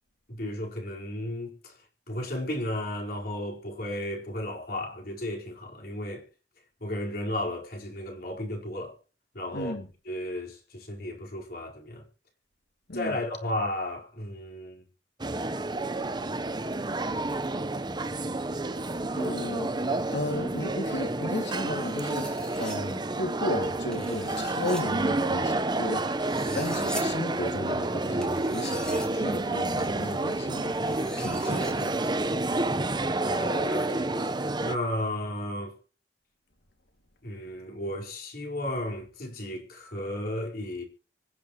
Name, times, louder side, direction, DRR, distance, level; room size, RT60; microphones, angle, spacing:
voice 1, 0.3-1.7 2.1-6.3 6.8-8.9 9.3-9.7 10.1-12.0 12.9-14.8 26.3-26.6 33.3-34.3 34.6-35.7 37.2-40.8, left 1 dB, 60° left, 4.6 m, -34 dB
voice 2, 9.5-9.9 12.9-13.2 19.1-30.8 31.2-32.1, left 1 dB, 75° left, 2.4 m, -35 dB
sound 1, 15.2-34.8, right 2 dB, 25° right, 0.9 m, -29 dB
sound 2, 21.8-22.8 23.9-24.8 26.1-27.0 28.2-29.1 29.8-29.9 30.7-31.7, equal, 5° left, 2.9 m, -42 dB
25.0 x 8.7 x 3.1 m
head